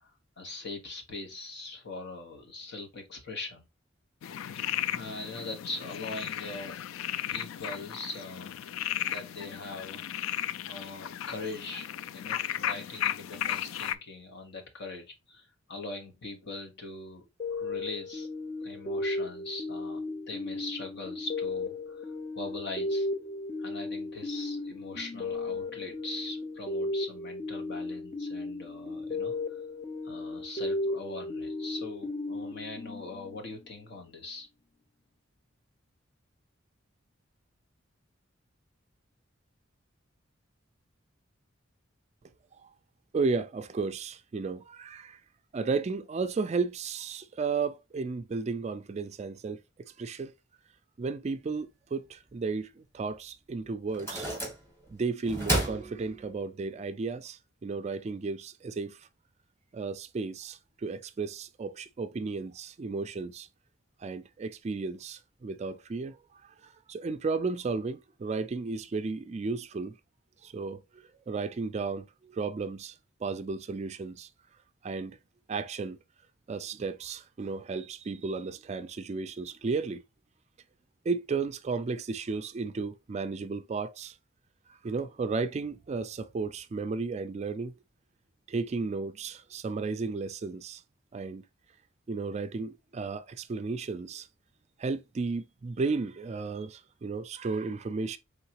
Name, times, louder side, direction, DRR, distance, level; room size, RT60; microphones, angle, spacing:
voice 1, 0.0-3.6 4.9-6.8 7.3-8.6 9.0-18.3 18.6-22.1 22.3-23.1 23.6-29.6 30.0-34.5, left 3 dB, 60° left, 1.2 m, -41 dB
sound 1, 4.2-13.9, left 11 dB, 90° left, 0.3 m, -35 dB
sound 2, 17.4-33.7, left 2 dB, 30° left, 0.5 m, -35 dB
voice 2, 43.1-45.2 45.5-49.6 50.0-50.3 51.0-54.3 54.9-59.0 59.7-63.5 64.0-66.2 66.6-70.0 70.4-70.8 71.3-72.9 73.2-74.3 74.8-75.2 75.5-76.0 76.5-80.0 81.1-84.1 84.8-87.7 88.5-90.8 91.1-91.4 92.1-94.3 94.8-98.2, right 4 dB, 35° right, 0.3 m, -33 dB
sound 3, 53.1-53.2 53.9-54.9 55.3-56.6, right 1 dB, 15° left, 1.6 m, -32 dB
4.7 x 3.5 x 2.9 m
head